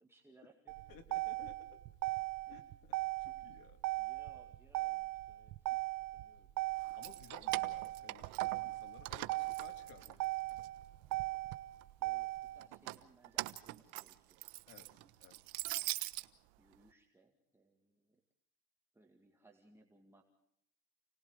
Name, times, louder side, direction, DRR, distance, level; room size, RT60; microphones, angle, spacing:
voice 1, 0.0-0.8 2.0-2.2 2.5-2.6 3.2-3.4 4.0-5.8 6.1-6.5 11.7-14.4 14.8-15.1 16.6-18.2 18.9-20.2, right 2 dB, 5° right, 1 dB, 2.1 m, -66 dB
Motor vehicle (road), 0.7-12.7, right 20 dB, 55° right, 0.8 m, -39 dB
voice 2, 0.9-1.8 2.5-3.8 7.0-8.3 8.6-10.3 14.7-15.4, left 9 dB, 65° left, 7 dB, 2.9 m, -58 dB
Keys jangling, 6.8-8.8 9.1-10.7 11.1-11.8 12.6-16.3, right 20 dB, 90° right, 1.2 m, -42 dB
29.5 x 19.0 x 4.9 m, 0.73 s
cardioid pair, 155°, 38 cm